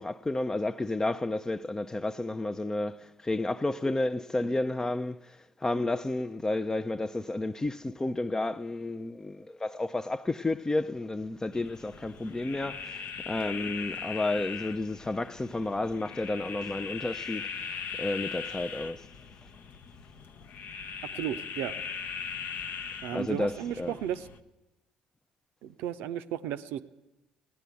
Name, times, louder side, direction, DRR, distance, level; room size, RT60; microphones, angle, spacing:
voice 1, 0.0-17.5 18.0-19.1 23.1-23.9, left 2 dB, 15° left, 0.5 m, -31 dB
sound 1, 11.5-24.4, left 6 dB, 50° left, 0.7 m, -40 dB
voice 2, 21.2-21.7 23.0-24.2 25.6-26.8, right 11 dB, 65° right, 0.6 m, -34 dB
16.5 x 9.9 x 8.1 m
figure-of-eight pair, 50°, 4 cm